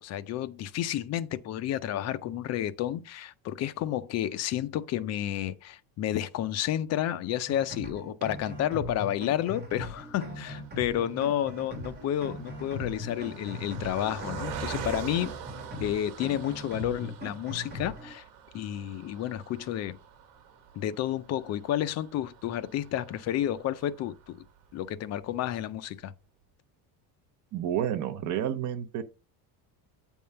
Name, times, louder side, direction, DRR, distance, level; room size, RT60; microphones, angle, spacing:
voice 1, 0.0-15.3 15.8-18.2 18.5-20.0 20.7-24.4 24.7-26.1, left 11 dB, 40° left, 0.4 m, -31 dB
sound 1, 7.5-18.1, left 1 dB, 25° right, 2.5 m, -40 dB
Car passing by, 9.2-24.7 25.2-25.3 25.6-25.8, right 7 dB, 70° right, 1.4 m, -45 dB
voice 2, 27.5-29.0, right 10 dB, 40° right, 0.8 m, -30 dB
8.5 x 3.6 x 5.4 m
cardioid pair, 180°, 44 cm